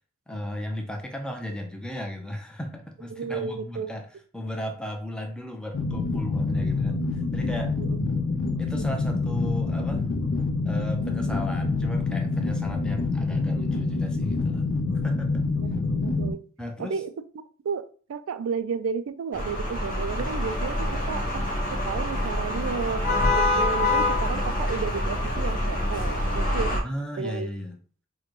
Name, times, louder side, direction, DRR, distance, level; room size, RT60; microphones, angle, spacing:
voice 1, 0.3-4.1 4.3-7.7 8.6-10.1 10.6-14.6 15.0-15.4 16.6-17.0 26.8-27.8, left 1 dB, 5° left, 3 dB, 0.5 m, -35 dB
voice 2, 3.1-3.9 7.8-8.0 15.6-15.7 16.0-16.4 16.8-17.1 17.6-26.8 27.2-27.5, right 6 dB, 65° right, 12 dB, 0.3 m, -32 dB
sound 1, 5.7-16.3, left 3 dB, 60° left, 0.5 m, -26 dB
sound 2, 19.3-26.8, left 1 dB, 40° left, 0.9 m, -26 dB
3.7 x 2.2 x 3.1 m, 0.42 s
head